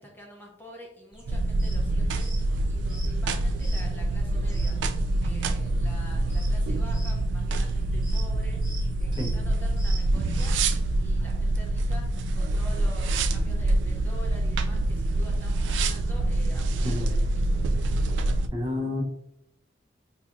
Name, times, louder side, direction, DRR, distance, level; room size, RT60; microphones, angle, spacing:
voice 1, 0.0-2.3 2.7-4.8 5.2-8.6 9.0-10.6 11.0-12.0 12.3-17.7, equal, 10° left, -1 dB, 0.6 m, -47 dB
sound 1, 1.1-10.5, right 1 dB, 5° right, 1.3 m, -45 dB
sound 2, 1.3-18.5, right 2 dB, 85° right, 0.3 m, -26 dB
voice 2, 18.5-19.0, left 2 dB, 25° right, -1 dB, 0.7 m, -30 dB
4.7 x 2.8 x 2.4 m, 0.80 s
head